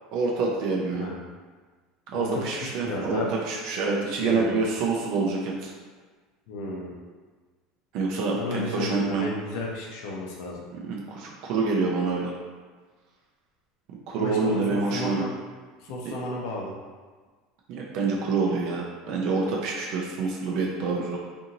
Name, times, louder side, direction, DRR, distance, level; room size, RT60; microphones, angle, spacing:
voice 1, 0.1-1.1 2.1-5.7 7.9-9.3 10.8-12.3 13.9-15.3 16.0-16.2 17.7-21.2, right 4 dB, 50° right, -2 dB, 0.4 m, -27 dB
voice 2, 2.1-3.3 4.1-4.6 6.5-6.9 8.3-10.6 14.2-15.3 15.8-16.7, left 2 dB, 60° left, -3 dB, 0.5 m, -33 dB
2.6 x 2.6 x 2.8 m, 1.4 s
cardioid pair, 175°, 0 cm